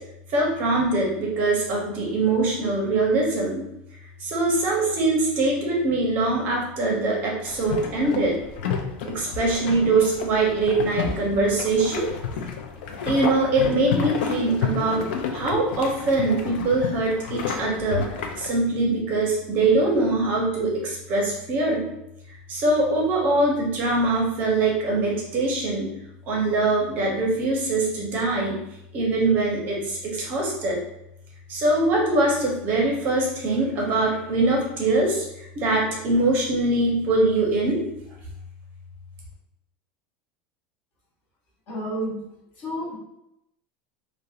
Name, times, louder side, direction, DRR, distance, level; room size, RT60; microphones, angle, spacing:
voice 1, 0.3-3.6 4.2-8.4 9.0-12.1 13.0-15.0 15.3-21.8 22.3-25.9 26.3-28.6 28.9-30.8 31.5-37.8, right 2 dB, 35° right, -2 dB, 0.6 m, -23 dB
sound 1, 7.5-18.5, left 6 dB, 85° left, 0.3 m, -31 dB
voice 2, 41.7-42.2 42.6-43.0, equal, 35° left, -4 dB, 0.7 m, -30 dB
2.7 x 2.1 x 2.3 m, 0.83 s
supercardioid pair, 170°, 5 cm